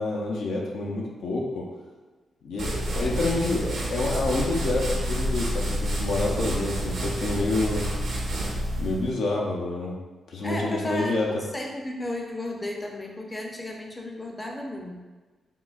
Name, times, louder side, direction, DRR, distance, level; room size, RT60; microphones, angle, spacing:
voice 1, 0.0-1.6 2.4-7.9 8.8-10.0 10.3-11.3, left 2 dB, 80° left, -2 dB, 0.4 m, -28 dB
sound 1, 2.6-9.1, right 1 dB, 80° right, 0.6 m, -29 dB
voice 2, 10.4-15.0, left 1 dB, 20° left, 1 dB, 0.4 m, -34 dB
3.6 x 2.0 x 2.3 m, 1.3 s
cardioid pair, 80°, 0 cm